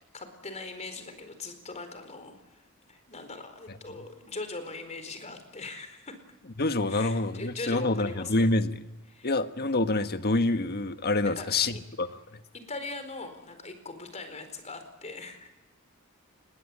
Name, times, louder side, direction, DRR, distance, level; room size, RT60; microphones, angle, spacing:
voice 1, 0.0-6.2 6.9-8.5 9.1-9.3 11.2-11.8 12.5-15.5, left 3 dB, 30° left, 8 dB, 4.5 m, -41 dB
voice 2, 6.6-8.8 9.2-12.1, left 2 dB, 50° left, 10 dB, 1.5 m, -27 dB
26.5 x 21.5 x 8.7 m, 1.0 s
head